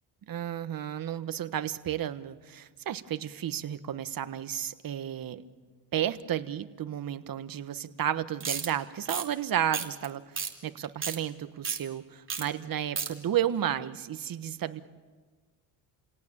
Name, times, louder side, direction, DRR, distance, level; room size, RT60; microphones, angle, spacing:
voice 1, 0.3-5.4 5.9-14.8, right 10 dB, 45° right, 11 dB, 1.4 m, -32 dB
sound 1, 8.4-8.7 9.1-9.3 9.7-10.1 10.4-10.5 10.8-11.2 11.6-11.8 12.3-12.4 12.7-13.1, right 5 dB, 25° right, 2.9 m, -32 dB
29.5 x 18.0 x 8.8 m, 1.4 s
cardioid pair, 105°, 46 cm